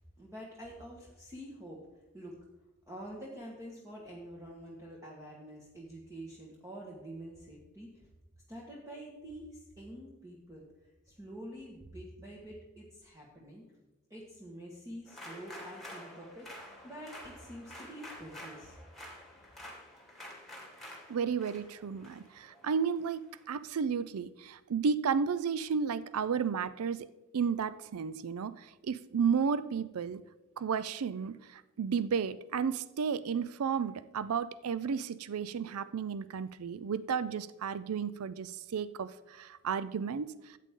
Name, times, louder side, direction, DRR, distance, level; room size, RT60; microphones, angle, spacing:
voice 1, 0.0-1.9 2.1-2.4 2.9-8.0 8.5-10.7 11.0-13.6 14.1-16.5 16.8-18.8, right 1 dB, 15° right, -4 dB, 1.5 m, -47 dB
sound 1, 15.1-23.4, left 1 dB, ahead, 2.5 m, -49 dB
voice 2, 21.1-27.1 27.3-30.2 30.6-40.6, right 6 dB, 75° right, 15 dB, 0.4 m, -33 dB
13.5 x 8.4 x 3.7 m, 1.0 s
head